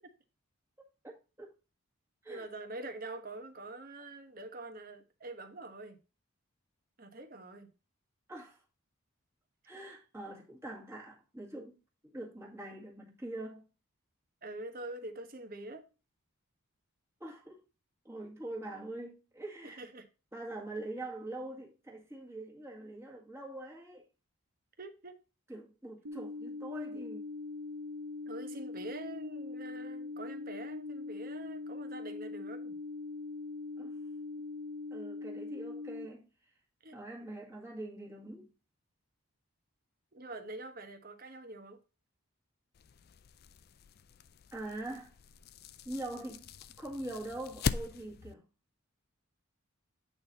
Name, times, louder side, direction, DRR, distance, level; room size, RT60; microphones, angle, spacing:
voice 1, 1.0-1.5 2.2-2.5 8.3-8.6 9.7-13.7 17.2-17.6 18.0-19.9 20.3-24.1 25.5-27.2 33.8-34.0 34.9-36.2 36.9-38.5 44.5-45.1 45.8-46.5 46.8-48.5, right 1 dB, 10° right, 1.7 m, -43 dB
voice 2, 2.3-6.0 7.0-7.7 14.4-15.8 19.6-20.0 24.8-25.2 28.3-32.8 36.8-37.0 40.1-41.8, right 2 dB, 40° right, 1.1 m, -45 dB
sound 1, 26.1-36.1, left 3 dB, 70° right, 1.0 m, -42 dB
sound 2, 42.7-48.3, left 6 dB, 45° left, 0.4 m, -41 dB
8.6 x 4.1 x 4.0 m
head